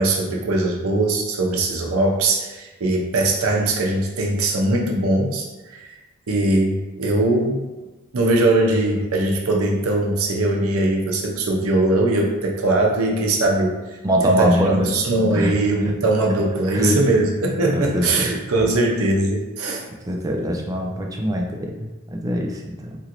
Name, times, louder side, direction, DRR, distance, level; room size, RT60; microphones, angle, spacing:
voice 1, 0.0-5.9 6.3-7.6 8.1-14.0 14.2-19.9, right 2 dB, 80° right, 1 dB, 0.6 m, -21 dB
voice 2, 14.0-14.9 15.3-15.5 16.7-17.0 17.7-18.4 20.1-23.0, equal, 15° right, 0 dB, 0.4 m, -22 dB
3.0 x 2.5 x 2.9 m, 1.2 s
head